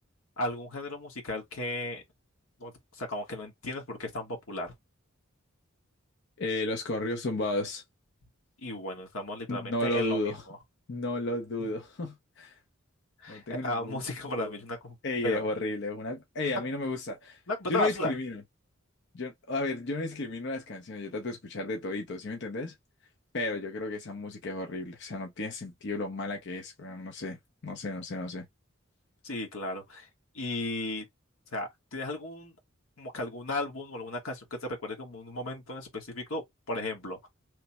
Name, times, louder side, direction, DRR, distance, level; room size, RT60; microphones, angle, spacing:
voice 1, 0.4-2.0 2.6-4.7 8.6-10.2 10.5-10.6 13.2-15.0 15.2-15.4 17.5-18.1 29.2-30.1 30.3-31.0 31.5-32.5 33.0-37.3, left 1 dB, 85° left, 1.2 m, -35 dB
voice 2, 6.4-7.8 9.5-10.4 10.9-12.6 13.3-14.0 14.4-14.6 15.0-17.4 17.7-18.4 19.1-22.7 23.3-28.5, left 2 dB, 60° left, 0.6 m, -33 dB
3.2 x 2.0 x 4.1 m
head